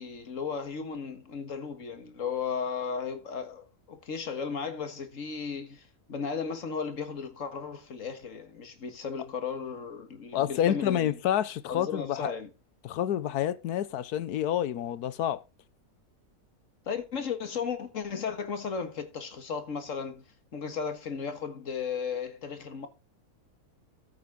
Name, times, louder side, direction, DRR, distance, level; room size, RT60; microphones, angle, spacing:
voice 1, 0.0-11.1 11.7-12.5 16.9-20.2 20.5-22.9, left 6 dB, 55° left, 2.0 m, -35 dB
voice 2, 10.3-12.3 12.8-15.4, left 11 dB, 90° left, 1.3 m, -28 dB
14.0 x 8.2 x 3.7 m
omnidirectional pair, 1.6 m